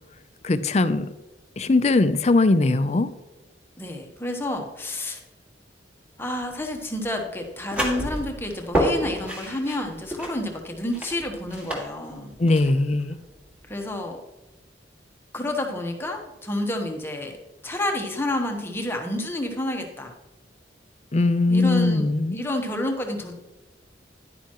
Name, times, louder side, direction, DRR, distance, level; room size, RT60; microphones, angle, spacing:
voice 1, 0.4-1.1 1.6-3.1 12.4-13.2 21.1-22.3, left 2 dB, 35° left, 12 dB, 0.5 m, -20 dB
voice 2, 3.8-5.2 6.2-12.3 13.7-14.2 15.3-17.4 17.6-20.1 21.5-23.3, left 1 dB, 15° left, 2 dB, 1.0 m, -29 dB
sound 1, 6.4-14.0, equal, 5° right, 1.8 m, -30 dB
10.5 x 9.2 x 3.0 m, 1.1 s
head